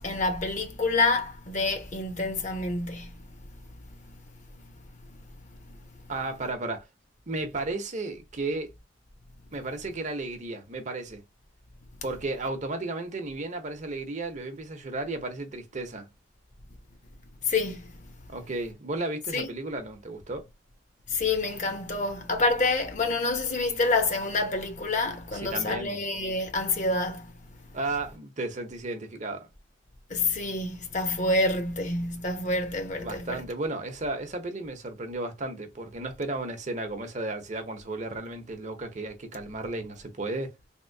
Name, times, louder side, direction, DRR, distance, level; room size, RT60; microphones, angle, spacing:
voice 1, 0.0-3.1 5.7-5.8 17.4-17.9 19.3-19.5 21.1-27.3 30.1-33.4, left 3 dB, 40° left, 0.8 m, -27 dB
voice 2, 6.1-6.8 7.3-8.7 9.5-11.2 12.0-16.1 18.3-20.4 25.3-26.0 27.7-29.5 33.0-40.5, right 2 dB, 40° right, 0.8 m, -34 dB
3.6 x 2.6 x 2.6 m
head